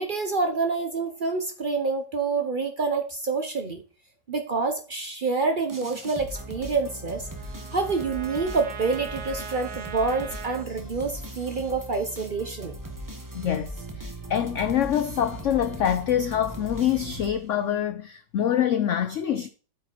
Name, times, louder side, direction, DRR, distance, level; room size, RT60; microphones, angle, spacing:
voice 1, 0.0-3.8 4.3-7.3 7.7-12.8, right 4 dB, 55° right, 0.5 m, -27 dB
sound 1, 5.7-17.8, right 1 dB, 15° right, 0.7 m, -39 dB
Trumpet, 6.3-10.7, right 7 dB, 70° right, 1.5 m, -41 dB
voice 2, 13.3-19.5, left 10 dB, 85° left, 0.6 m, -25 dB
8.4 x 4.8 x 4.5 m
omnidirectional pair, 1.9 m